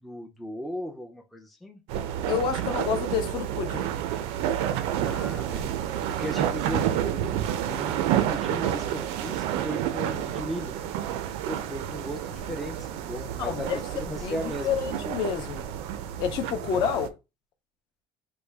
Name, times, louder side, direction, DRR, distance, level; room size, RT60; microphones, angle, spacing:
voice 1, 0.0-1.8 5.0-5.8 6.1-10.8 11.5-13.7 14.1-14.7 16.6-16.9, equal, ahead, 0.3 m, -37 dB
sound 1, 1.9-17.1, right 10 dB, 85° right, 0.5 m, -29 dB
voice 2, 2.3-3.9 13.4-13.8 14.2-15.6 16.2-17.1, left 7 dB, 50° left, 0.5 m, -29 dB
3.1 x 2.2 x 3.4 m
cardioid pair, 175°, 10 cm